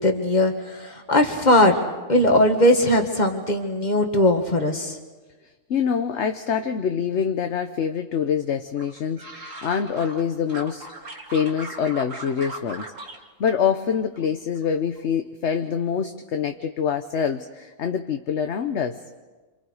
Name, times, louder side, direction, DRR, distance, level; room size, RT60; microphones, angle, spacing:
voice 1, 0.0-1.8 2.1-5.0, left 1 dB, 30° left, 5 dB, 2.0 m, -19 dB
voice 2, 5.7-10.8 11.3-12.9 13.4-19.0, left 7 dB, 55° left, 6 dB, 1.1 m, -25 dB
sound 1, 8.8-10.2 10.5-13.2 13.5-14.2 14.6-15.0, right 2 dB, 55° right, 2.6 m, -39 dB
27.5 x 27.0 x 4.9 m, 1.3 s
omnidirectional pair, 1.6 m